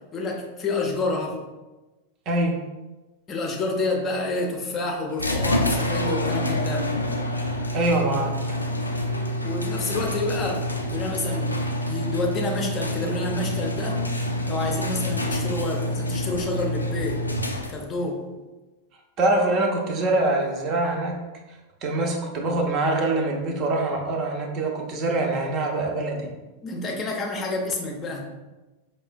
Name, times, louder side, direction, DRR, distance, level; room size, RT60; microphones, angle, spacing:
voice 1, 0.1-1.4 3.3-6.9 9.4-11.5 11.9-14.0 14.5-17.3 17.7-18.2 26.6-28.2, left 2 dB, 25° left, 1 dB, 0.6 m, -28 dB
voice 2, 2.3-2.6 7.7-8.4 19.2-21.2 21.8-26.3, right 2 dB, 35° right, 1 dB, 0.6 m, -24 dB
sound 1, 5.2-18.0, left 1 dB, 85° left, 0.3 m, -27 dB
4.8 x 2.1 x 2.5 m, 1.1 s
figure-of-eight pair, 90°, 0 cm